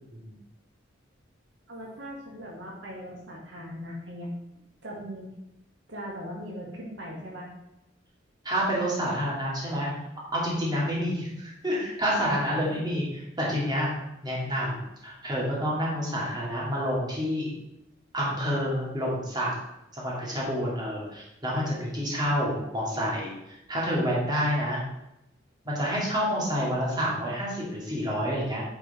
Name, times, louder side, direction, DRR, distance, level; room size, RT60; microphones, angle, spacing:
voice 1, 1.7-4.3 4.8-5.4 5.9-7.5 12.4-12.9, equal, 70° right, -2 dB, 1.9 m, -39 dB
voice 2, 8.4-9.9 10.3-13.1 13.4-13.9 14.2-14.8 15.0-17.5 18.1-19.5 19.9-24.8 25.6-28.6, equal, 20° right, -5 dB, 2.6 m, -28 dB
9.2 x 4.9 x 4.3 m, 0.87 s
head